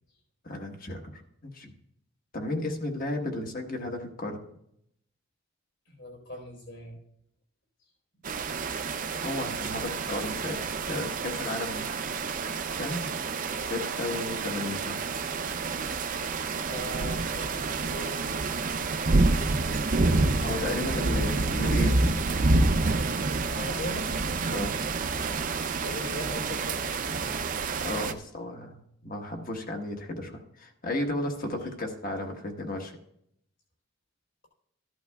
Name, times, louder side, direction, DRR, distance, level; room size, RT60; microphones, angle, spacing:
voice 1, 0.4-1.7 2.3-4.4 9.2-11.9 12.8-13.1 13.6-15.0 20.4-22.1 24.4-24.7 27.8-28.8 29.0-32.9, left 1 dB, 45° left, 3 dB, 1.2 m, -34 dB
voice 2, 5.9-7.0 11.4-11.5 16.7-18.5 19.4-21.3 23.5-24.1 25.8-26.8 31.3-31.5, left 1 dB, 65° left, 1 dB, 4.0 m, -40 dB
sound 1, 8.2-28.1, right 3 dB, 40° right, 0.5 m, -28 dB
14.5 x 11.0 x 2.3 m, 0.74 s
head